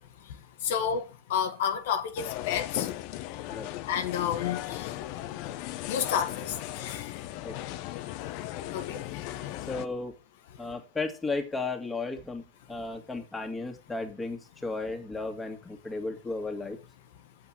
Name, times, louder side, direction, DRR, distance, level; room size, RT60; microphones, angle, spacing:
voice 1, 0.6-1.0 1.3-2.9 3.9-4.9 5.9-7.0 8.7-9.0, left 8 dB, 65° left, 1.3 m, -30 dB
sound 1, 2.2-9.9, left 14 dB, 50° left, 0.8 m, -37 dB
voice 2, 9.7-10.1 10.6-12.4 12.7-16.8, left 3 dB, 10° left, 2.1 m, -34 dB
7.9 x 6.0 x 7.5 m
hypercardioid pair, 120°, 0 cm